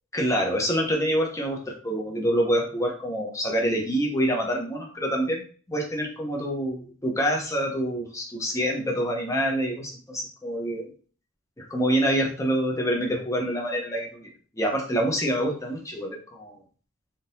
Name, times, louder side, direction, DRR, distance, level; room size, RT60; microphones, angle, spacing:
voice 1, 0.1-5.4 5.7-10.9 11.6-14.3 14.6-16.6, equal, 15° left, 0 dB, 0.7 m, -26 dB
3.7 x 2.7 x 2.6 m, 0.41 s
head